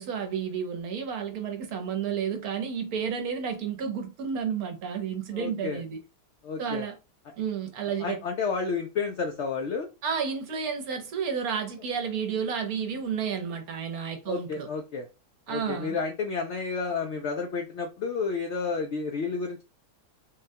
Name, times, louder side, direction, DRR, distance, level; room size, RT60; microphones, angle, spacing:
voice 1, 0.0-6.0 6.6-7.0 7.4-8.2 10.0-14.7 15.5-16.0, right 7 dB, 70° right, 1.2 m, -31 dB
voice 2, 5.3-5.8 6.4-6.9 8.0-9.9 14.3-15.1 15.5-19.6, left 5 dB, 75° left, 0.6 m, -31 dB
3.7 x 2.2 x 2.6 m
omnidirectional pair, 1.7 m